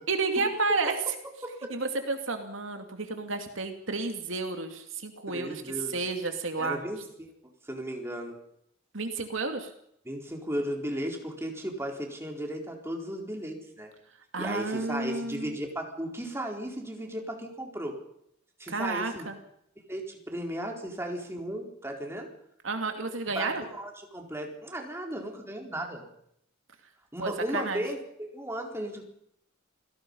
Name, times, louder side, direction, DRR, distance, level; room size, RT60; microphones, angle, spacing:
voice 1, 0.1-1.0 1.7-6.8 8.9-9.7 14.3-15.5 18.7-19.4 22.6-23.6 27.2-27.8, right 3 dB, 75° right, 5 dB, 2.6 m, -31 dB
voice 2, 5.3-6.0 6.6-7.3 7.6-8.4 10.0-13.9 14.4-17.9 18.6-19.3 19.9-22.3 23.3-26.1 27.1-29.0, right 1 dB, 15° right, 1 dB, 4.3 m, -35 dB
28.5 x 17.5 x 5.6 m, 0.71 s
head